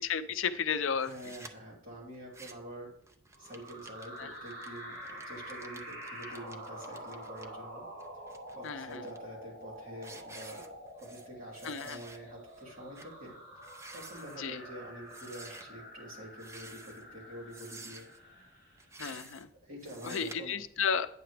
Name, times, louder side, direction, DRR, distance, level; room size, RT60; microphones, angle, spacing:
voice 1, 0.0-1.1 4.2-4.3 8.6-9.1 11.6-12.0 14.4-14.6 19.0-19.5 20.0-21.1, left 6 dB, 65° left, 11 dB, 0.5 m, -33 dB
sound 1, 1.0-1.5 2.1-2.7 3.1-7.5 8.0-9.2 9.6-9.8 10.0-11.3 11.5-12.2 12.5-12.6 12.9-13.1 13.6-14.4 15.1-15.6 16.3-17.0 17.5-18.2 18.8-19.4 19.8-20.4, right 3 dB, 15° right, 0.4 m, -51 dB
voice 2, 1.0-2.9 3.4-7.9 8.5-10.7 10.9-13.3 13.9-18.1 19.1-19.2 19.6-20.6, equal, 40° right, -4 dB, 2.7 m, -46 dB
sound 2, 3.3-19.0, equal, 85° right, 3.4 m, -47 dB
9.1 x 6.7 x 3.3 m, 0.75 s
head